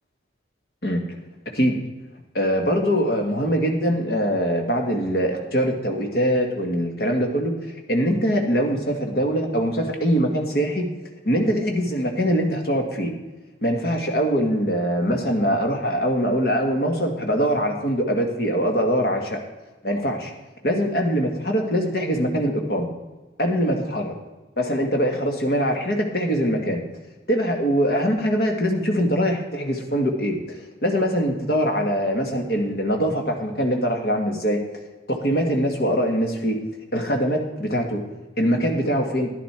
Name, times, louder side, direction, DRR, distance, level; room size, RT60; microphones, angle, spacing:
voice 1, 2.3-7.5 7.9-10.9 11.3-13.1 13.6-19.4 19.8-20.3 20.6-22.9 23.4-24.1 24.6-26.8 27.3-30.6 30.8-34.6 35.1-36.6 36.9-38.0 38.4-39.3, equal, 55° left, 3 dB, 1.7 m, -22 dB
11.0 x 11.0 x 4.4 m, 1.2 s
head